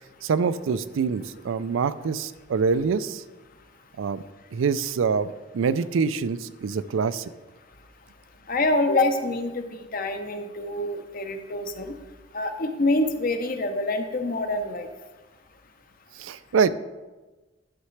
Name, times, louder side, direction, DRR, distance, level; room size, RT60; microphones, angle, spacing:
voice 1, 0.2-3.2 4.0-4.2 4.5-7.3 16.2-16.7, right 5 dB, 90° right, 14 dB, 0.4 m, -25 dB
voice 2, 8.5-11.9 12.3-14.9, left 2 dB, 45° left, 6 dB, 0.8 m, -26 dB
11.0 x 6.7 x 3.2 m, 1.2 s
head